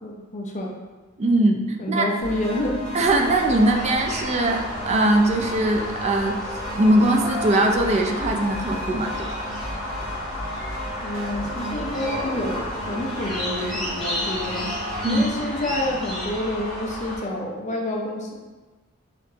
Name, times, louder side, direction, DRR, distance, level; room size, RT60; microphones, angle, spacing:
voice 1, 0.0-0.7 1.8-2.9 11.0-14.7 15.0-18.3, left 1 dB, 35° left, -1 dB, 0.6 m, -28 dB
voice 2, 1.2-2.1 2.9-6.4 6.8-9.3 15.0-15.2, right 1 dB, 35° right, 3 dB, 0.4 m, -21 dB
sound 1, 2.2-15.3, left 1 dB, 80° right, 1.2 m, -35 dB
sound 2, 3.0-17.2, left 1 dB, ahead, 1.1 m, -32 dB
4.2 x 3.0 x 2.7 m, 1.3 s
head